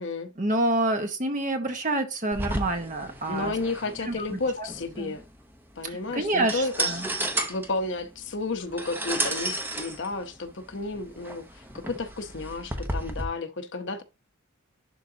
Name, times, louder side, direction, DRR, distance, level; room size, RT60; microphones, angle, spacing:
voice 1, 0.4-3.5 4.1-4.7 5.0-5.2 5.8-7.1, right 2 dB, 40° right, 1.2 m, -28 dB
sound 1, 2.3-13.2, right 1 dB, 10° right, 0.9 m, -33 dB
voice 2, 3.3-5.2 5.8-7.1 7.5-14.0, left 3 dB, 60° left, 0.9 m, -32 dB
11.0 x 3.7 x 2.7 m
head